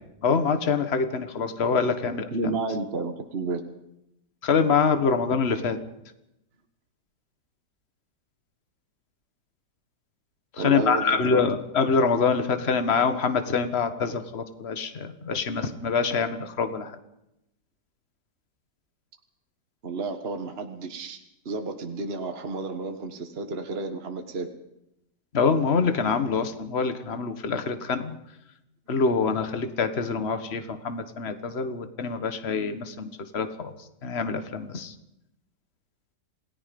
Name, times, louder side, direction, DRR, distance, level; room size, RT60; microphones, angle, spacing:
voice 1, 0.2-2.3 4.4-5.8 10.5-16.9 25.3-28.2 28.9-32.9 33.3-33.7 34.0-34.9, left 5 dB, 40° left, 9 dB, 1.7 m, -25 dB
voice 2, 2.3-3.7 10.6-11.5 19.8-24.5, right 3 dB, 35° right, 5 dB, 1.8 m, -32 dB
28.0 x 18.0 x 5.4 m, 0.84 s
omnidirectional pair, 1.8 m